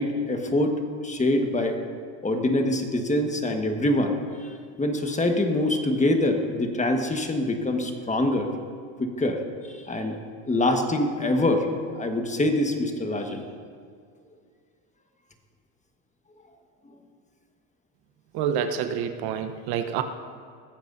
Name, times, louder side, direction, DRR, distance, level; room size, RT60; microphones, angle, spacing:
voice 1, 0.0-1.8 2.2-4.5 4.8-8.5 9.0-10.2 10.5-11.7 11.9-13.4, left 1 dB, 15° left, 4 dB, 1.4 m, -25 dB
voice 2, 18.3-20.0, right 8 dB, 55° right, 8 dB, 1.0 m, -27 dB
21.0 x 14.5 x 2.7 m, 2.1 s
supercardioid pair, 100°, 45 cm